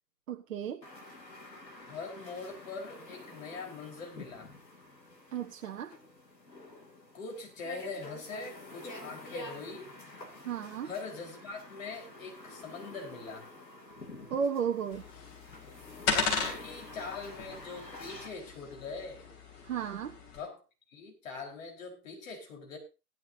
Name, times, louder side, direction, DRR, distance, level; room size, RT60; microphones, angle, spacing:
voice 1, 0.3-0.8 5.3-5.9 10.4-10.9 14.3-15.1 19.6-20.1, right 7 dB, 50° right, 2 dB, 1.1 m, -34 dB
sound 1, 0.8-18.3, left 2 dB, 85° left, 2.9 m, -48 dB
voice 2, 1.9-4.5 7.1-9.9 10.8-13.5 16.1-19.3 20.3-20.6 20.9-22.8, left 4 dB, 50° left, 1 dB, 4.6 m, -42 dB
sound 2, 14.9-20.4, left 4 dB, 30° left, 3.5 m, -36 dB
18.0 x 10.5 x 2.8 m, 0.30 s
figure-of-eight pair, 120°, 49 cm